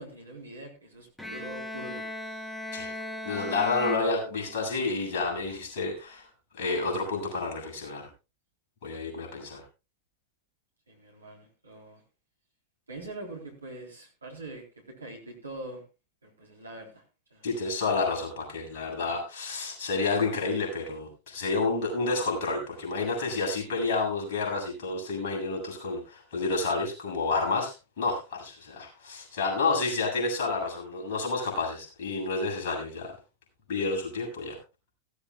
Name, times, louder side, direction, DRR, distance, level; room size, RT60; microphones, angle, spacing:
voice 1, 0.0-2.2 10.9-12.0 12.9-14.6 15.0-15.8 16.2-17.0 17.3-17.5, right 2 dB, 75° right, 1 dB, 3.6 m, -43 dB
Bowed string instrument, 1.2-4.9, left 1 dB, 5° left, 2.9 m, -38 dB
voice 2, 3.2-6.3 6.6-8.1 8.8-9.6 17.4-33.2 33.7-34.6, left 3 dB, 50° left, 1 dB, 7.6 m, -30 dB
16.5 x 15.5 x 2.3 m, 0.30 s
figure-of-eight pair, 90°, 0 cm